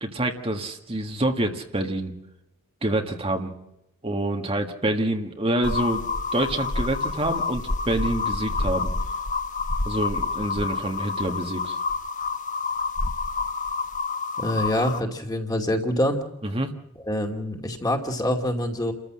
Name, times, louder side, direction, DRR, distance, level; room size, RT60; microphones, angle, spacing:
voice 1, 0.0-2.2 2.8-3.6 4.0-6.0 6.3-8.9 9.9-11.8 16.4-16.7, right 1 dB, 25° right, 3 dB, 1.8 m, -27 dB
sound 1, 5.6-15.0, left 4 dB, 35° left, 1.1 m, -28 dB
voice 2, 14.4-16.2 17.0-18.9, left 1 dB, 20° left, 4 dB, 2.5 m, -25 dB
30.0 x 14.5 x 7.7 m, 0.85 s
head